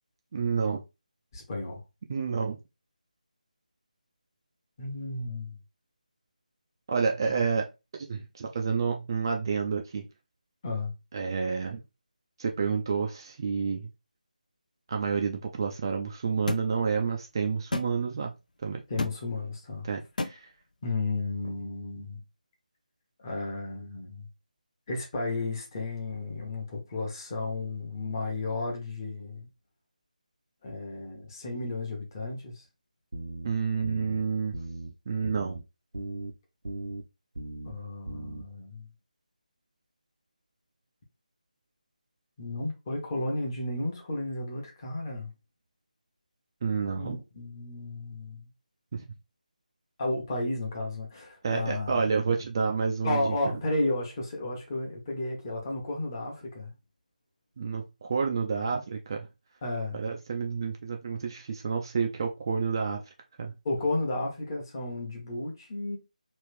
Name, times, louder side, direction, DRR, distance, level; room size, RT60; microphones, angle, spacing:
voice 1, 0.3-0.8 2.1-2.6 6.9-7.7 8.1-10.1 11.1-11.8 12.4-13.9 14.9-18.3 18.6-18.8 19.9-20.5 33.4-34.6 35.1-35.6 46.6-47.2 48.9-49.0 51.4-53.4 57.6-59.3 59.9-63.0 63.4-63.5, right 5 dB, 30° right, 0.4 m, -29 dB
voice 2, 1.3-1.8 4.8-5.6 7.3-7.4 10.6-10.9 18.9-19.9 20.8-22.2 23.2-24.3 24.9-29.5 30.6-32.6 37.6-38.9 42.4-45.3 47.0-48.5 50.0-52.0 53.0-56.7 59.6-60.0 63.6-66.0, left 2 dB, 25° left, 1.0 m, -33 dB
sound 1, 16.5-16.6 17.7-17.9 19.0-19.2 20.2-20.3, left 3 dB, 65° left, 0.5 m, -30 dB
sound 2, 33.1-33.5 33.8-34.2 34.5-34.9 35.2-35.6 35.9-36.3 36.6-37.0 37.3-37.7 38.1-38.4, right 2 dB, 80° right, 0.7 m, -37 dB
3.1 x 2.5 x 3.3 m
figure-of-eight pair, 160°, 5 cm